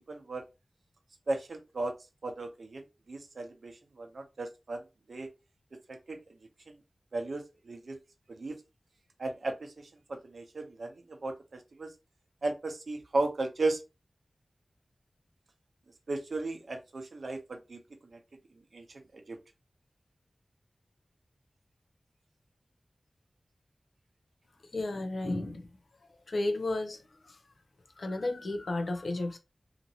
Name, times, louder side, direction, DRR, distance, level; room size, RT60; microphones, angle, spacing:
voice 1, 0.1-0.4 1.3-1.9 2.2-2.8 3.1-5.3 5.9-6.2 6.7-6.8 7.1-8.0 8.3-8.6 9.2-11.9 12.4-13.8 16.1-18.2 18.7-19.4, right 2 dB, 75° right, 0.6 m, -35 dB
voice 2, 24.7-25.7 26.3-27.0 27.3-27.4 28.0-29.4, left 2 dB, 75° left, 0.5 m, -32 dB
2.9 x 2.5 x 2.7 m
wide cardioid pair, 75°, 0 cm